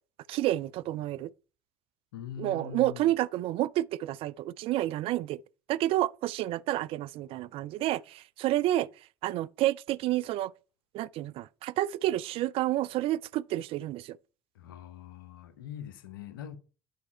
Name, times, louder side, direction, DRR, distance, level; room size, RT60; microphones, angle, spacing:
voice 1, 0.3-1.3 2.4-5.4 5.7-8.9 9.2-10.5 10.9-14.2, right 14 dB, 55° right, 0.4 m, -29 dB
voice 2, 2.1-3.1 14.5-16.6, left 8 dB, 85° left, 0.8 m, -42 dB
8.2 x 4.7 x 4.3 m
hypercardioid pair, 70°, 11 cm